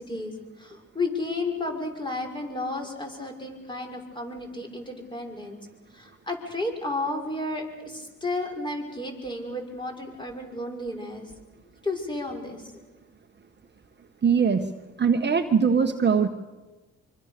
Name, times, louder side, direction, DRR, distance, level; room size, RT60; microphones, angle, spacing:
voice 1, 0.0-5.6 5.9-11.3 11.8-12.6, left 2 dB, 15° left, 2 dB, 6.4 m, -32 dB
voice 2, 14.2-14.7 15.0-16.3, right 6 dB, 35° right, 6 dB, 1.5 m, -21 dB
25.5 x 24.5 x 6.9 m, 1.2 s
cardioid pair, 90°, 30 cm